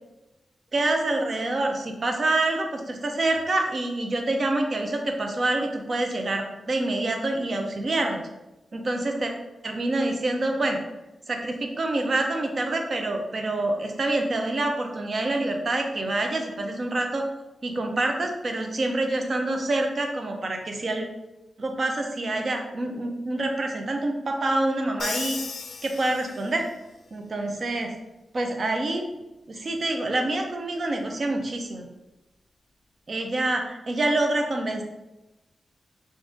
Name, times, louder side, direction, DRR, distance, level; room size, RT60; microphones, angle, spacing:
voice 1, 0.7-8.2 8.7-9.3 9.6-10.8 11.3-17.3 17.6-21.1 21.6-25.4 25.8-26.6 27.1-27.9 28.3-29.0 29.5-31.9 33.1-34.8, right 2 dB, 40° right, 3 dB, 0.5 m, -26 dB
Crash cymbal, 25.0-26.7, left 4 dB, 65° left, 0.4 m, -35 dB
3.7 x 2.5 x 3.7 m, 0.98 s
wide cardioid pair, 160°, 0 cm